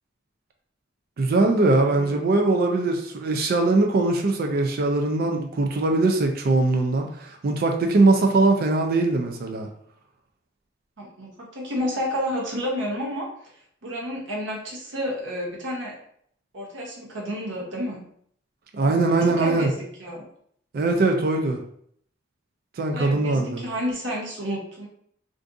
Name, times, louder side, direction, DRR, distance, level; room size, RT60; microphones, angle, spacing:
voice 1, 1.2-9.7 18.7-19.7 20.7-21.6 22.8-23.6, right 2 dB, 50° right, 3 dB, 0.4 m, -21 dB
voice 2, 1.7-2.2 11.0-13.3 13.8-16.0 16.5-18.0 18.8-20.3 22.9-24.9, equal, 70° right, -3 dB, 0.8 m, -30 dB
2.6 x 2.4 x 3.6 m, 0.66 s
head